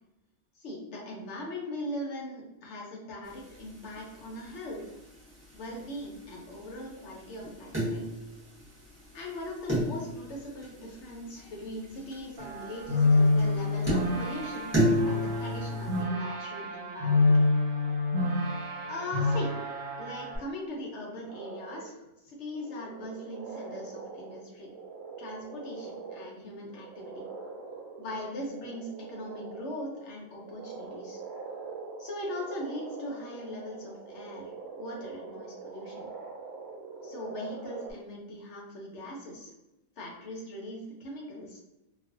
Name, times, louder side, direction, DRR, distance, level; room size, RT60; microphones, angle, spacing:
voice 1, 0.6-4.9 5.5-8.1 9.1-14.7 15.0-17.4 18.9-19.6 20.0-24.7 25.2-27.3 28.0-31.2 32.0-36.1 37.0-39.5 40.0-41.6, left 1 dB, 65° left, -2 dB, 0.9 m, -40 dB
sound 1, 3.2-16.0, equal, 15° right, 0.7 m, -34 dB
sound 2, 12.4-20.4, left 2 dB, 85° right, 1.1 m, -27 dB
sound 3, 21.3-21.9 22.5-26.4 26.7-37.9, right 4 dB, 60° right, 0.9 m, -43 dB
2.4 x 2.3 x 2.4 m, 0.94 s
omnidirectional pair, 1.4 m